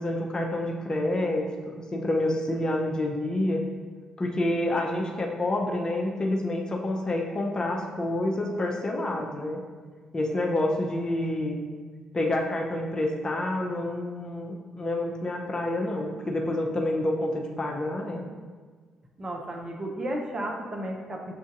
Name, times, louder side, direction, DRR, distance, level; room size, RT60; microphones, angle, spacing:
voice 1, 0.0-3.6 4.2-9.6 10.1-11.6 12.1-18.2, left 1 dB, 30° left, 0 dB, 0.7 m, -28 dB
voice 2, 19.2-21.4, right 1 dB, 35° right, 1 dB, 0.7 m, -33 dB
7.2 x 2.6 x 2.5 m, 1.5 s
figure-of-eight pair, 40°, 2 cm